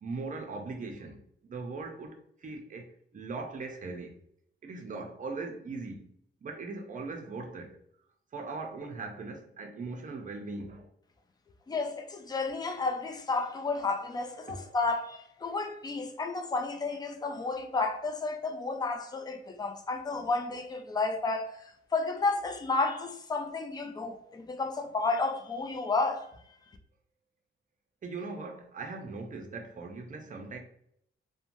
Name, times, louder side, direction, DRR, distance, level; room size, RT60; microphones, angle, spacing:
voice 1, 0.0-4.1 4.6-6.0 6.4-7.8 8.3-10.9 14.5-14.7 15.4-15.6 28.0-30.6, right 3 dB, 40° right, 0.5 m, -40 dB
voice 2, 11.7-21.5 21.9-26.3 26.7-26.8, left 3 dB, 20° left, 0.3 m, -32 dB
3.0 x 2.1 x 2.5 m
wide cardioid pair, 145°, 20 cm